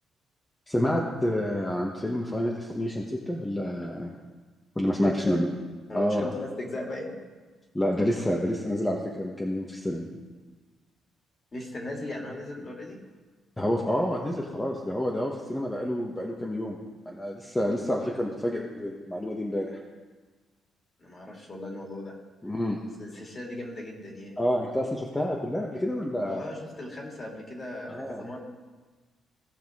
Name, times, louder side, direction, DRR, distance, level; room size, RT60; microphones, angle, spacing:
voice 1, 0.7-4.1 4.8-5.5 5.9-6.3 7.7-10.0 13.6-16.8 17.1-19.8 22.4-22.8 24.4-26.4 27.9-28.3, left 1 dB, 15° left, -2 dB, 1.1 m, -28 dB
voice 2, 5.0-5.4 5.9-7.2 11.5-13.0 21.0-22.1 23.0-24.4 26.3-28.4, left 2 dB, 35° left, -1 dB, 2.6 m, -37 dB
17.5 x 5.9 x 3.7 m, 1.4 s
cardioid pair, 90°, 0 cm